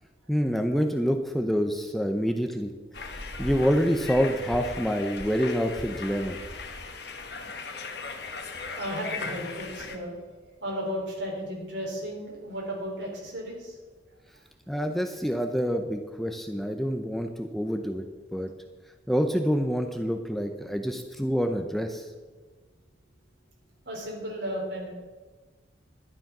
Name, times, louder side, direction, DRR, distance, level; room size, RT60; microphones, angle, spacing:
voice 1, 0.3-2.7 3.1-6.4 14.7-18.0 18.3-18.5 19.1-22.1, equal, ahead, 5 dB, 0.6 m, -27 dB
sound 1, 2.9-10.0, left 3 dB, 60° left, 1.3 m, -38 dB
voice 2, 8.8-10.1 10.6-13.8 23.9-24.9, equal, 65° right, -1 dB, 4.0 m, -34 dB
12.0 x 10.0 x 6.0 m, 1.3 s
head